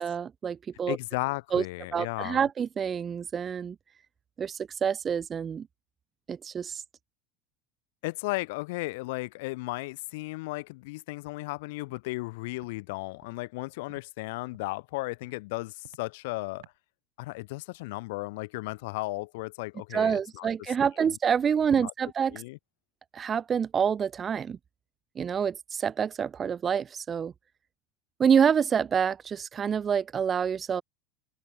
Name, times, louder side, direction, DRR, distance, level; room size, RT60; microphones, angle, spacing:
voice 1, 0.0-1.0 1.5-1.6 1.9-3.8 4.4-5.7 6.3-6.8 19.9-22.4 23.1-24.6 25.2-27.3 28.2-30.8, right 7 dB, 25° right, 0.6 m, -27 dB
voice 2, 0.9-2.5 8.0-16.6 17.2-20.5 20.8-20.9 21.7-21.9 22.3-22.6, left 23 dB, 75° left, 0.4 m, -35 dB
Walk footsteps, 11.9-12.0 12.5-12.7 13.2-13.3 13.9-14.0 14.5-14.8 15.2-15.4 15.8-16.1 16.6-16.8, right 20 dB, 80° right, 6.5 m, -55 dB
open air
supercardioid pair, 145°, 0 cm